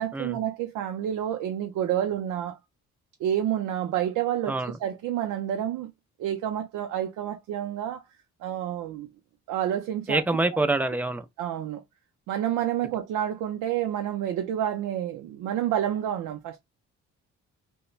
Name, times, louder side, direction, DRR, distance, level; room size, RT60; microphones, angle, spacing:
voice 1, 0.0-2.5 3.2-5.9 6.2-8.0 8.4-9.1 9.5-10.2 11.4-11.8 12.3-16.6, right 10 dB, 85° right, 0.5 m, -29 dB
voice 2, 10.1-11.2, right 2 dB, 5° right, 0.3 m, -26 dB
3.0 x 2.1 x 2.4 m
cardioid pair, 90°, 30 cm